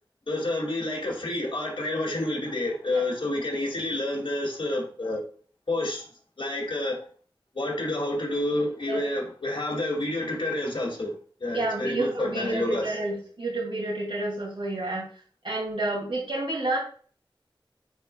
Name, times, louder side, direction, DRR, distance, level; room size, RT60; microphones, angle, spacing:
voice 1, 0.3-5.2 5.7-6.0 6.4-7.0 7.5-11.1 11.4-12.9, left 1 dB, 70° left, 2.3 m, -29 dB
voice 2, 11.5-15.1 15.4-16.8, right 2 dB, 65° right, 2.5 m, -29 dB
10.0 x 4.4 x 2.3 m
wide cardioid pair, 60°, 9 cm